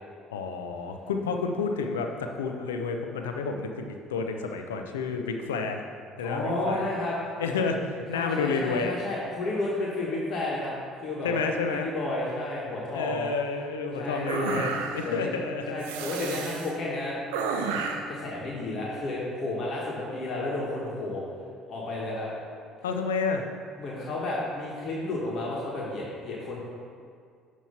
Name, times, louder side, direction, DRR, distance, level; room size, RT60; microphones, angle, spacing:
voice 1, 0.3-5.8 6.2-6.9 7.4-9.0 11.2-11.9 12.9-15.8 22.8-23.4, left 4 dB, 85° left, 4 dB, 0.6 m, -30 dB
voice 2, 6.2-7.1 8.1-10.7 11.0-13.3 14.0-14.7 15.0-15.3 15.7-17.1 17.6-17.8 18.1-21.2 21.7-22.3 23.8-26.6, left 2 dB, 50° left, -5 dB, 1.5 m, -32 dB
sound 1, 13.8-19.3, equal, 15° right, 0.5 m, -44 dB
sound 2, 14.3-15.2 15.8-16.7 17.3-18.1, right 5 dB, 80° right, 0.5 m, -31 dB
9.2 x 3.1 x 5.7 m, 2.1 s
hypercardioid pair, 60°, 0 cm